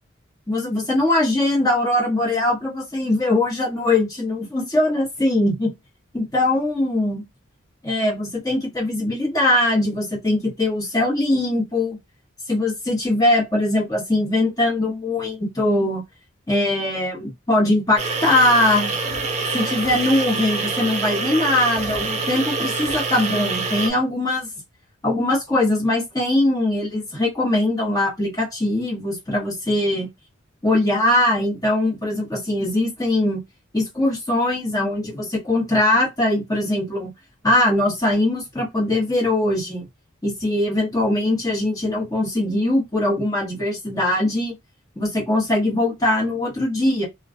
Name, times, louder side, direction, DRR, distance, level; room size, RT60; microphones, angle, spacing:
voice 1, 0.5-5.7 6.1-7.2 7.8-12.0 12.5-16.0 16.5-18.9 19.5-24.5 25.0-30.1 30.6-33.4 33.7-37.1 37.4-39.8 40.2-44.5 45.0-47.1, left 1 dB, 15° left, 1.0 m, -21 dB
sound 1, 18.0-23.9, right 3 dB, 30° right, 0.4 m, -25 dB
2.4 x 2.2 x 2.4 m
head